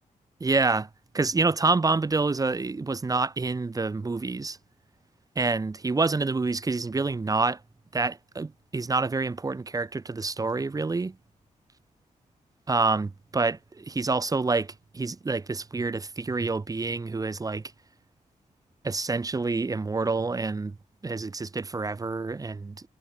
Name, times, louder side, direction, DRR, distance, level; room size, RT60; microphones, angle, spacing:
voice 1, 0.4-0.9 1.1-4.6 5.4-7.6 7.9-11.2 12.7-17.7 18.8-20.8 21.0-22.9, right 3 dB, 25° right, 2.5 m, -27 dB
wide cardioid pair, 140°, 14 cm